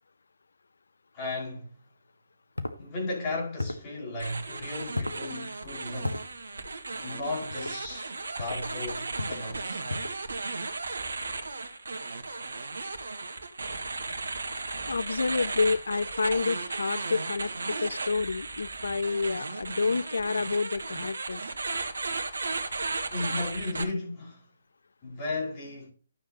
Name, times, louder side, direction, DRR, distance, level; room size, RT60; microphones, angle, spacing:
voice 1, 1.1-1.8 2.8-6.2 7.0-9.8 14.1-14.3 22.3-22.8 23.1-24.5 25.0-25.9, left 2 dB, 25° left, 5.4 m, -35 dB
sound 1, 2.6-2.8 3.6-3.9 4.9-5.2 6.0-6.3 7.5-7.8 8.4-8.6 9.2-9.5 9.9-10.2, left 2 dB, 80° left, 1.5 m, -34 dB
sound 2, 4.2-23.8, right 3 dB, 60° right, 1.9 m, -35 dB
voice 2, 14.9-21.4, left 4 dB, 60° left, 0.3 m, -29 dB
13.0 x 7.3 x 3.0 m
figure-of-eight pair, 140°, 0 cm